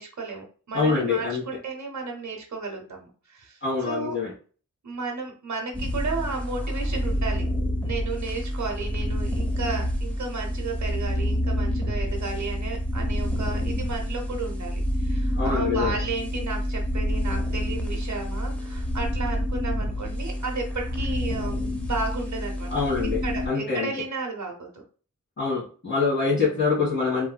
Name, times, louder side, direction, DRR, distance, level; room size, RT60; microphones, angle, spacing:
voice 1, 0.0-4.1 4.8-7.5 7.8-22.7 23.2-24.8 26.3-26.6, right 4 dB, 65° right, 1 dB, 0.8 m, -33 dB
voice 2, 0.7-1.4 3.6-4.3 15.3-15.9 22.7-23.2 23.4-23.9 25.4-27.3, left 4 dB, 40° left, -10 dB, 1.5 m, -25 dB
sound 1, 5.7-23.5, equal, 5° left, 0.7 m, -28 dB
3.1 x 2.6 x 2.2 m, 0.39 s
wide cardioid pair, 45°, 32 cm